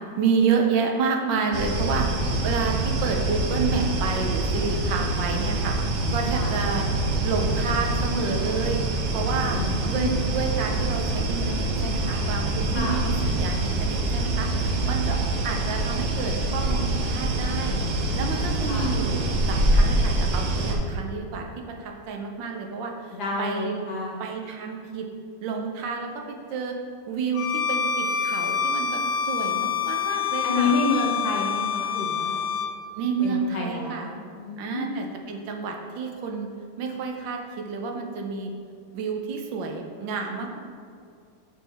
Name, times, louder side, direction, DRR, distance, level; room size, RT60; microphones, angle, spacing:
voice 1, 0.2-2.1 2.4-5.8 6.1-6.9 7.2-8.8 9.1-9.6 9.8-15.2 15.4-17.8 18.1-21.4 21.8-23.8 24.2-25.1 25.4-26.8 27.1-30.8 32.9-34.1 34.6-36.5 36.8-38.5 38.9-40.6, right 5 dB, 75° right, 2 dB, 1.4 m, -29 dB
sound 1, 1.5-20.8, right 2 dB, 60° right, 1.0 m, -25 dB
voice 2, 9.5-10.3 12.7-13.0 18.7-18.9 23.2-24.2 30.4-32.6 33.2-35.1, left 3 dB, 60° left, -2 dB, 1.6 m, -29 dB
Bowed string instrument, 27.3-32.8, left 6 dB, 80° left, 0.7 m, -27 dB
6.2 x 6.0 x 3.4 m, 2.3 s
omnidirectional pair, 2.1 m